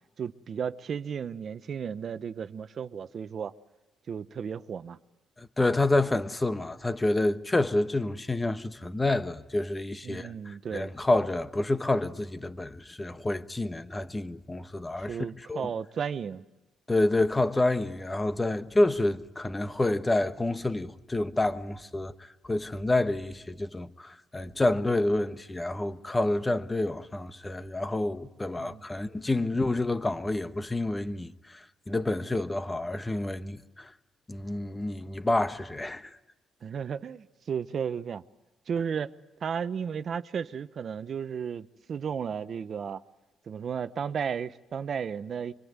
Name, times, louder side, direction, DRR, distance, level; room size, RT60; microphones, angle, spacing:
voice 1, 0.2-3.5 4.1-5.0 10.0-10.9 15.1-16.4 28.6-28.8 36.6-38.2 38.7-39.1 39.4-43.0 43.5-45.5, right 7 dB, 55° right, 0.9 m, -34 dB
voice 2, 5.4-15.2 15.5-15.7 16.9-22.1 22.4-31.3 31.9-33.9 34.3-36.1, left 2 dB, 15° left, 1.2 m, -28 dB
25.0 x 24.0 x 9.6 m
cardioid pair, 90°, 0 cm